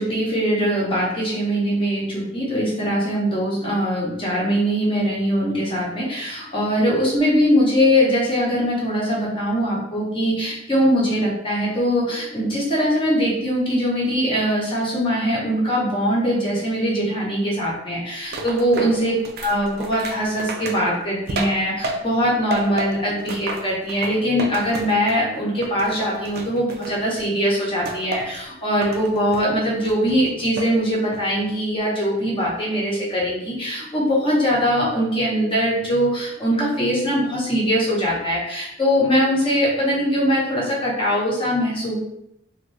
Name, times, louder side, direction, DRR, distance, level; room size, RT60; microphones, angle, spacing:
voice 1, 0.0-19.1 19.4-42.0, equal, 30° left, -5 dB, 0.9 m, -21 dB
sound 1, 18.3-22.2 22.5-25.3 25.6-27.2 27.8-28.4 28.8-29.5 29.8-30.7 31.1-31.5, right 2 dB, 55° right, 0.4 m, -32 dB
2.7 x 2.5 x 3.2 m, 0.79 s
head